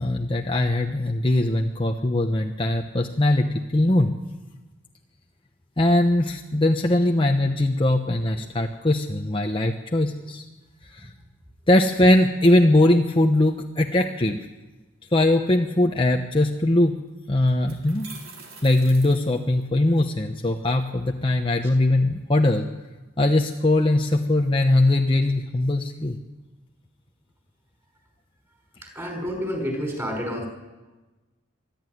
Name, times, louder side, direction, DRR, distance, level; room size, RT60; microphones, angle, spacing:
voice 1, 0.0-4.1 5.8-10.4 10.9-11.1 11.7-14.4 15.1-17.0 17.3-18.1 18.6-22.7 23.2-26.2, left 1 dB, 25° left, 3 dB, 0.9 m, -21 dB
sound 1, 16.8-16.9 17.5-20.0, right 4 dB, 75° right, 3.9 m, -45 dB
voice 2, 28.8-30.5, equal, 15° right, 2 dB, 5.5 m, -29 dB
25.0 x 12.0 x 9.4 m, 1.2 s
head